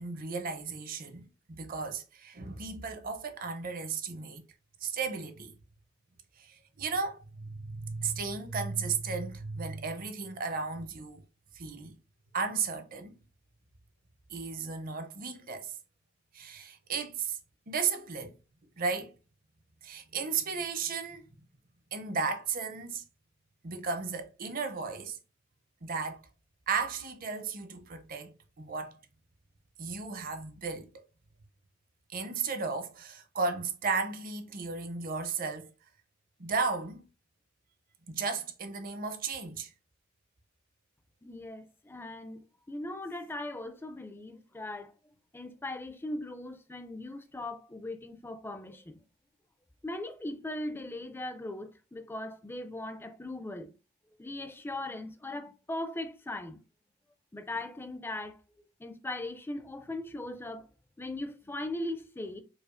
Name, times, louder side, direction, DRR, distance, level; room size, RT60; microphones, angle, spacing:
voice 1, 0.0-4.4 4.8-5.5 6.4-11.2 11.5-12.0 12.3-13.1 14.3-15.8 16.3-17.4 17.7-18.4 18.8-19.1 19.8-21.3 21.9-23.0 23.6-25.2 25.8-26.2 26.7-29.0 29.8-30.9 32.1-35.7 36.4-37.0 38.1-39.7, right 5 dB, 45° right, 0.6 m, -34 dB
voice 2, 41.2-44.9 45.3-49.0 49.8-53.7 54.2-56.6 57.3-58.4 58.8-60.7 61.0-62.4, left 1 dB, 10° left, 0.4 m, -39 dB
4.8 x 2.3 x 2.5 m
head